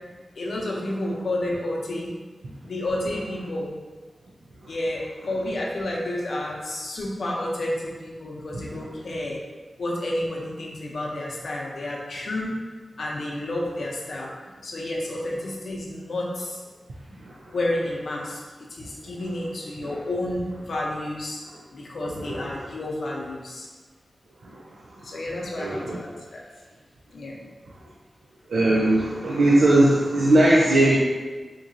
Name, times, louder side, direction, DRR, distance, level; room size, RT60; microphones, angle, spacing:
voice 1, 0.4-2.1 2.6-3.7 4.7-9.4 9.8-12.6 13.0-14.3 14.6-16.6 17.5-21.4 21.7-23.7 25.0-26.4 27.1-27.4, left 1 dB, 75° left, -3 dB, 0.7 m, -30 dB
voice 2, 22.2-22.7 24.5-24.6 25.0-25.1 25.6-26.0 28.5-31.0, right 1 dB, 90° right, -5 dB, 0.5 m, -20 dB
3.7 x 2.9 x 2.6 m, 1.4 s
wide cardioid pair, 90°, 0 cm